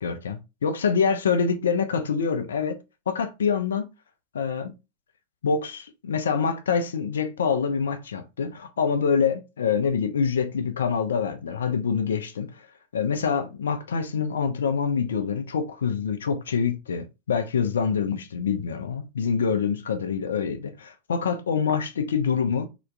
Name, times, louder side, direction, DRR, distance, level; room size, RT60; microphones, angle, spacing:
voice 1, 0.0-2.8 3.1-3.9 4.3-4.7 5.4-12.5 12.9-22.7, left 6 dB, 65° left, 0.5 m, -25 dB
3.3 x 2.9 x 2.5 m
figure-of-eight pair, 90°, 0 cm